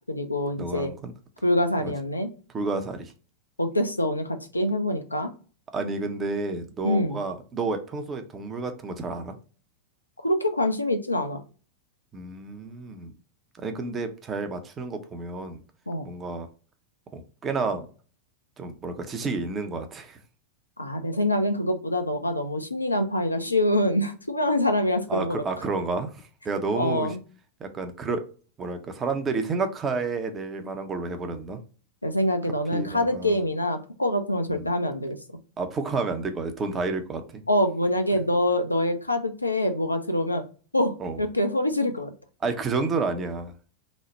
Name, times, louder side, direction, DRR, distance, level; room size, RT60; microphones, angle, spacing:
voice 1, 0.1-0.9 1.4-2.3 3.6-5.3 6.8-7.2 10.2-11.4 15.9-16.1 20.8-25.4 26.7-27.2 32.0-35.2 37.5-40.4 40.7-42.1, left 1 dB, 85° left, 0.4 m, -25 dB
voice 2, 0.6-1.1 1.8-1.9 2.5-3.1 5.7-9.3 12.1-13.1 13.6-15.6 16.0-16.5 17.1-17.9 18.6-20.2 25.1-27.2 27.6-28.2 28.6-31.6 32.7-33.4 34.5-34.7 35.6-37.4 41.0-41.2 42.4-43.5, right 4 dB, 25° right, 0.6 m, -30 dB
3.1 x 2.0 x 4.0 m
figure-of-eight pair, 90°, 0 cm